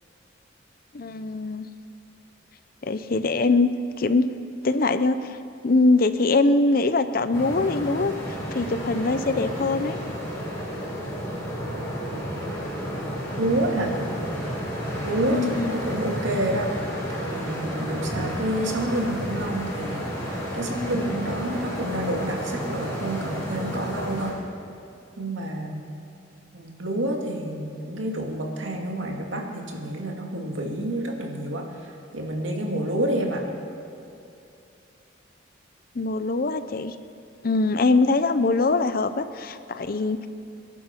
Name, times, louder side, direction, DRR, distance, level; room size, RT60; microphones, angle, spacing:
voice 1, 0.9-1.7 2.8-3.7 4.0-4.2 4.6-5.4 5.6-8.1 8.5-10.0 15.3-15.7 35.9-37.0 37.4-40.3, left 3 dB, 50° left, 11 dB, 0.6 m, -22 dB
sound 1, 7.3-24.3, equal, 15° left, 4.5 m, -31 dB
voice 2, 13.4-13.9 15.0-16.7 17.1-24.4 25.2-25.8 26.5-33.4, right 1 dB, 85° right, 0 dB, 2.2 m, -29 dB
23.5 x 11.0 x 4.5 m, 2.6 s
head